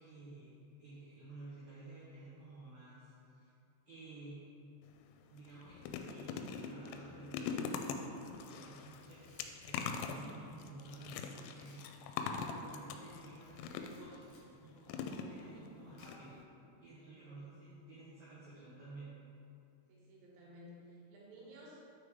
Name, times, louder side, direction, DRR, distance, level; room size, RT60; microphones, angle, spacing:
voice 1, 0.0-3.5 3.9-4.5 4.9-5.0 5.3-11.9 12.4-14.3 14.6-19.2, right 2 dB, 90° right, -9 dB, 2.0 m, -53 dB
sound 1, 4.8-5.0 5.4-14.2 14.9-15.7 16.0-16.1 16.4-16.5, left 6 dB, 85° left, 3.1 m, -42 dB
Camera, 8.9-9.9 11.6-11.9 12.2-12.4 13.4-14.5 16.0-16.4, left 3 dB, 70° left, 2.3 m, -67 dB
voice 2, 19.9-21.8, equal, 75° right, -4 dB, 3.6 m, -55 dB
9.1 x 4.8 x 3.6 m, 2.7 s
omnidirectional pair, 5.9 m